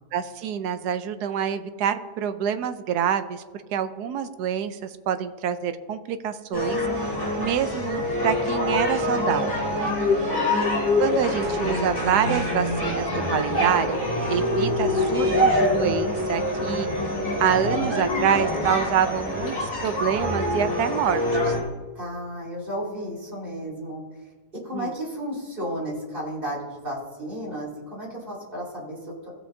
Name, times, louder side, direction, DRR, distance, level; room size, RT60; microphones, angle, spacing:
voice 1, 0.1-3.4 3.7-9.7 11.0-14.0 14.3-16.9 17.4-21.6 24.7-24.9, right 9 dB, 70° right, 10 dB, 1.1 m, -26 dB
sound 1, 6.5-21.6, equal, 10° left, 3.0 m, -26 dB
sound 2, 9.7-19.0 19.3-19.6 19.9-20.0, left 5 dB, 70° left, 1.3 m, -29 dB
voice 2, 9.8-10.6 21.9-24.3 24.6-29.3, equal, 30° right, -6 dB, 3.1 m, -33 dB
16.0 x 7.7 x 2.7 m, 1.4 s
omnidirectional pair, 1.9 m